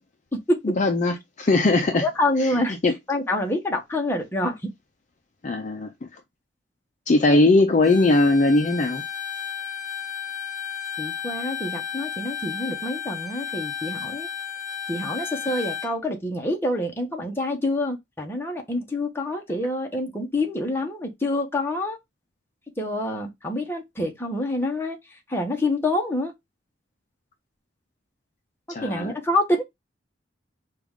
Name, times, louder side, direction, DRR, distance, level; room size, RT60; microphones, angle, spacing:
voice 1, 0.7-2.0 2.8-2.9 5.4-6.1 7.1-9.0 28.7-29.1, left 2 dB, 40° left, 0.5 m, -20 dB
voice 2, 2.0-2.8 3.1-4.7 7.3-7.4 11.0-14.3 14.9-22.0 22.8-26.3 28.8-29.6, left 1 dB, 15° left, 1.0 m, -27 dB
Bowed string instrument, 7.8-15.9, left 9 dB, 20° right, 1.1 m, -33 dB
4.8 x 2.5 x 3.5 m
head